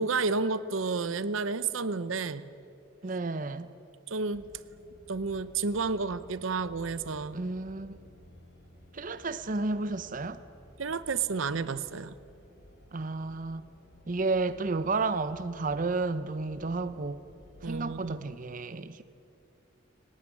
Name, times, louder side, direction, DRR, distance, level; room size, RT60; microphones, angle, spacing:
voice 1, 0.0-2.5 4.1-4.4 5.1-7.4 10.8-12.1 17.6-18.3, right 4 dB, 80° right, 0.8 m, -31 dB
voice 2, 3.0-3.7 7.3-8.0 8.9-10.4 12.9-13.6 14.1-17.2 17.6-19.0, right 3 dB, 40° right, 0.7 m, -32 dB
sound 1, 4.3-18.2, left 1 dB, 55° left, 7.0 m, -55 dB
20.0 x 19.0 x 9.8 m
head